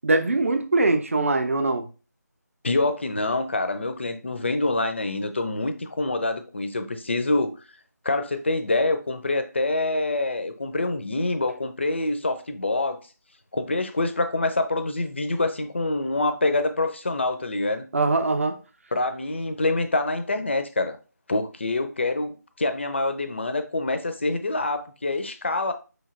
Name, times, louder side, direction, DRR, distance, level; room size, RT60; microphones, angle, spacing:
voice 1, 0.0-1.9 17.9-18.6, right 2 dB, 45° right, 0.6 m, -22 dB
voice 2, 2.6-7.5 8.0-13.0 13.5-17.9 18.9-21.0 21.3-25.7, left 2 dB, 40° left, 0.4 m, -26 dB
5.2 x 3.2 x 2.4 m
figure-of-eight pair, 160°, 10 cm